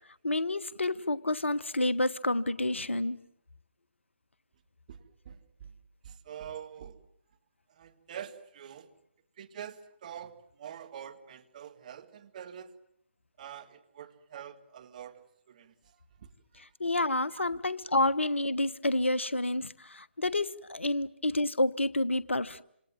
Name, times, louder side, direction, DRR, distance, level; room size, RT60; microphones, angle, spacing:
voice 1, 0.2-3.2 16.6-22.6, left 2 dB, 75° left, 1.1 m, -29 dB
voice 2, 6.0-7.0 7.8-8.9 9.4-12.7 13.4-15.7 16.5-16.6 17.3-17.6, right 9 dB, 40° right, 2.0 m, -45 dB
27.0 x 27.0 x 7.7 m
figure-of-eight pair, 140°, 7 cm